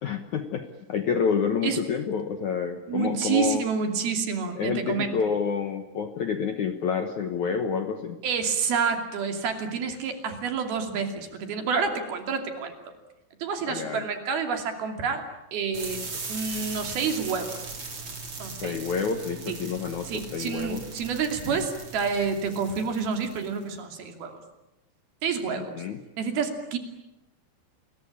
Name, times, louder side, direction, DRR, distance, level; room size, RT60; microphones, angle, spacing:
voice 1, 0.0-3.6 4.6-8.2 13.7-14.1 18.6-20.8 21.5-21.6 25.6-26.0, left 6 dB, 65° left, 7 dB, 2.0 m, -28 dB
voice 2, 2.9-5.2 8.2-12.7 13.4-15.2 15.5-16.0 16.3-17.6 18.4-18.8 19.5-19.6 20.0-24.4 25.2-25.8 26.2-26.8, right 5 dB, 60° right, 5 dB, 4.4 m, -28 dB
sound 1, 15.7-23.6, right 4 dB, 30° right, 4.6 m, -39 dB
29.0 x 22.5 x 8.8 m, 0.91 s
omnidirectional pair, 5.0 m